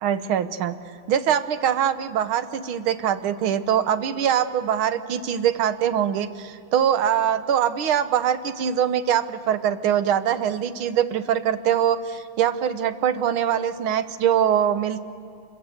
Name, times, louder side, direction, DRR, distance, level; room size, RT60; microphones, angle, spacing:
voice 1, 0.0-0.8 1.1-15.0, right 9 dB, 80° right, 11 dB, 1.8 m, -23 dB
27.5 x 21.0 x 7.9 m, 2.4 s
omnidirectional pair, 2.2 m